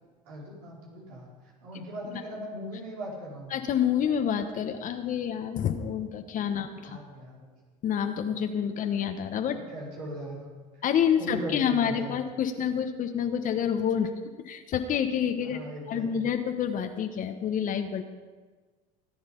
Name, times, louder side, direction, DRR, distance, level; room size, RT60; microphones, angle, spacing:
voice 1, 0.2-1.3 1.6-3.5 6.5-6.6 6.9-7.4 9.5-10.5 10.7-10.8 11.1-12.2 14.0-14.1 15.4-16.3, right 1 dB, 80° right, -4 dB, 5.0 m, -39 dB
voice 2, 3.5-7.0 7.8-9.6 10.8-14.1 14.4-15.6 15.9-18.0, left 8 dB, 50° left, 7 dB, 1.2 m, -28 dB
18.0 x 9.5 x 5.3 m, 1.4 s
supercardioid pair, 85°, 18 cm